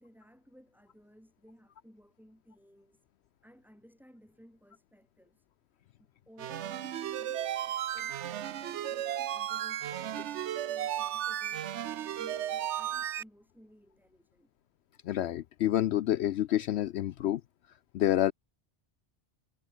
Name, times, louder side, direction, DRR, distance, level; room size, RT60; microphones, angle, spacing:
voice 1, 0.0-3.0 3.4-5.5 6.0-14.5, equal, ahead, 7.7 m, -58 dB
sound 1, 6.4-13.2, right 11 dB, 80° right, 1.0 m, -34 dB
voice 2, 15.0-17.4 17.9-18.3, left 12 dB, 70° left, 0.8 m, -28 dB
omnidirectional pair, 1.2 m